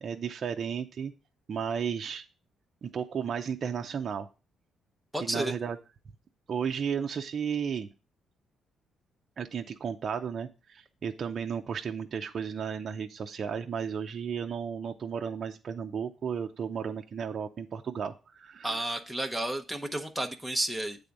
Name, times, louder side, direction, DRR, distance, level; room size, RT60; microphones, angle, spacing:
voice 1, 0.0-1.1 1.5-2.2 2.8-4.3 5.1-5.8 6.5-7.9 9.4-18.9, right 7 dB, 50° right, 4 dB, 0.5 m, -34 dB
voice 2, 5.1-5.5 18.6-21.0, right 1 dB, ahead, 6 dB, 0.7 m, -31 dB
8.4 x 3.5 x 5.2 m, 0.32 s
cardioid pair, 90°, 0 cm